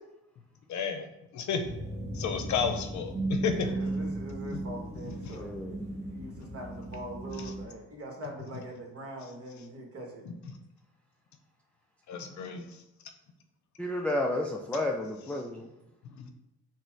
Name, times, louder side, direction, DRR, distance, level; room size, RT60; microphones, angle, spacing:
voice 1, 0.7-1.1 1.3-1.7 2.1-3.7 4.5-4.6 5.0-5.4 10.3-10.4 12.1-12.6 16.2-16.3, left 6 dB, 70° left, 7 dB, 0.7 m, -32 dB
sound 1, 1.6-7.6, right 2 dB, 25° right, 0.9 m, -36 dB
voice 2, 3.6-10.3, equal, 50° right, 2 dB, 1.1 m, -43 dB
voice 3, 5.3-5.8 13.8-15.7, left 1 dB, 5° left, 1 dB, 0.3 m, -31 dB
4.2 x 2.1 x 4.5 m, 0.94 s
cardioid pair, 90°, 30 cm